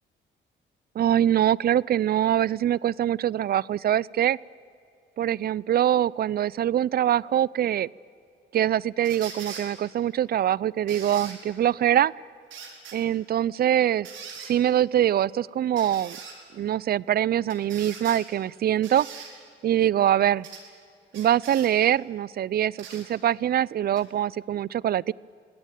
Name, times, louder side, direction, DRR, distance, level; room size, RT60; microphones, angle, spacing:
voice 1, 1.0-4.4 5.2-7.9 8.5-12.1 12.9-14.1 14.4-16.2 16.5-19.1 19.6-20.5 21.1-25.1, right 11 dB, 50° right, 24 dB, 0.4 m, -23 dB
sound 1, 9.0-9.7 10.9-11.4 12.5-13.0 14.0-14.5 15.8-16.3 17.5-18.2 18.8-19.3 20.4-20.6 21.1-21.7 22.8-23.0 23.9-24.0, right 6 dB, 75° right, 4.4 m, -41 dB
22.5 x 17.0 x 9.1 m, 2.5 s
cardioid pair, 90°, 20 cm